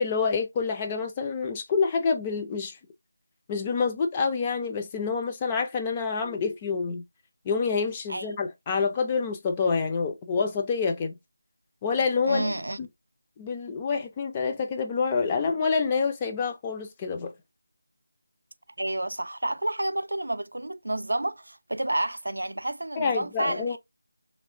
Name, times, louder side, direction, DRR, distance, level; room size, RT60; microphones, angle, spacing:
voice 1, 0.0-2.8 3.5-7.0 7.5-11.2 11.8-12.9 13.4-17.3 23.0-23.8, left 5 dB, 15° left, 0.3 m, -27 dB
voice 2, 12.3-12.8 18.8-23.8, right 1 dB, 75° right, 0.4 m, -30 dB
3.1 x 3.0 x 2.4 m
figure-of-eight pair, 165°, 0 cm